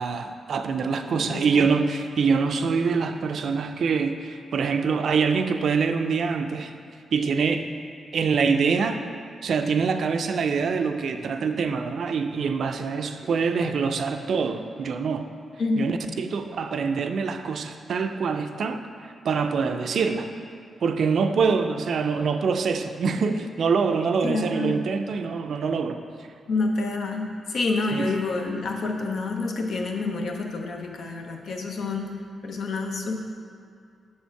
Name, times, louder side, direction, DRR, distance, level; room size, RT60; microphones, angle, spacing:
voice 1, 0.0-6.7 7.1-7.7 8.1-9.0 9.4-15.3 15.8-20.3 20.8-26.0 27.9-28.1, right 5 dB, 70° right, 7 dB, 0.4 m, -25 dB
voice 2, 1.1-1.7 15.6-16.0 24.2-24.8 26.5-33.2, left 3 dB, 70° left, 2 dB, 0.7 m, -28 dB
6.3 x 4.3 x 4.6 m, 2.4 s
cardioid pair, 75°, 0 cm